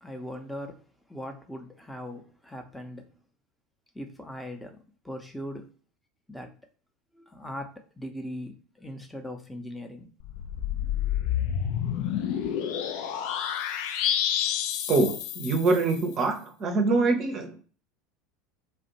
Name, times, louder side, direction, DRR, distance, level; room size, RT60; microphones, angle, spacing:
voice 1, 0.0-3.1 3.9-5.7 6.3-6.6 7.1-10.1, equal, 5° left, 0.7 m, -40 dB
sound 1, 10.2-16.0, left 9 dB, 55° left, 0.3 m, -29 dB
voice 2, 14.9-17.6, right 3 dB, 35° right, 0.6 m, -24 dB
2.4 x 2.1 x 2.8 m
figure-of-eight pair, 75°, 0 cm